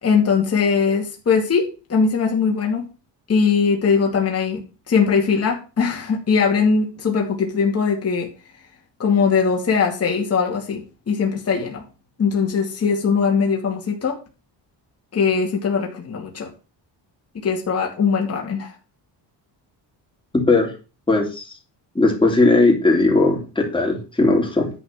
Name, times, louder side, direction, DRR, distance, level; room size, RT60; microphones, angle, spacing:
voice 1, 0.0-2.8 3.3-4.6 4.9-8.3 9.0-11.8 12.2-14.2 15.1-16.5 17.4-18.7, left 5 dB, 35° left, 0 dB, 2.4 m, -20 dB
voice 2, 21.1-21.4 21.9-24.7, left 2 dB, 10° left, 1 dB, 3.0 m, -17 dB
11.0 x 4.4 x 7.4 m, 0.33 s
cardioid pair, 145°, 43 cm